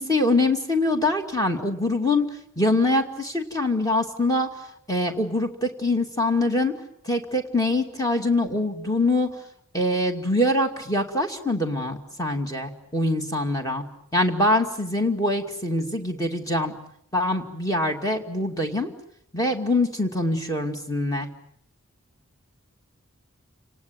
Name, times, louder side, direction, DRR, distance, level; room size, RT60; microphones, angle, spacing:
voice 1, 0.0-2.3 2.6-4.6 4.9-6.7 7.0-9.3 9.7-13.8 14.1-16.7 17.1-18.9 19.3-21.3, left 2 dB, 15° left, 4 dB, 2.5 m, -24 dB
29.5 x 19.0 x 9.4 m, 0.72 s
head